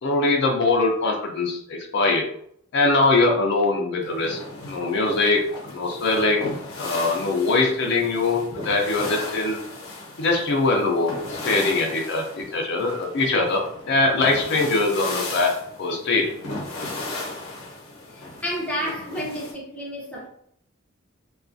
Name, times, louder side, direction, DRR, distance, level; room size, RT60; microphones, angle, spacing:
voice 1, 0.0-2.2 2.7-4.4 4.7-5.4 5.7-6.5 6.8-9.6 10.2-13.6 13.9-15.5 15.8-16.3, left 3 dB, 55° left, 1 dB, 0.4 m, -22 dB
sound 1, 4.0-19.5, left 2 dB, 90° left, 0.7 m, -36 dB
voice 2, 18.1-20.3, equal, 5° left, -4 dB, 0.6 m, -31 dB
2.3 x 2.3 x 2.5 m, 0.69 s
head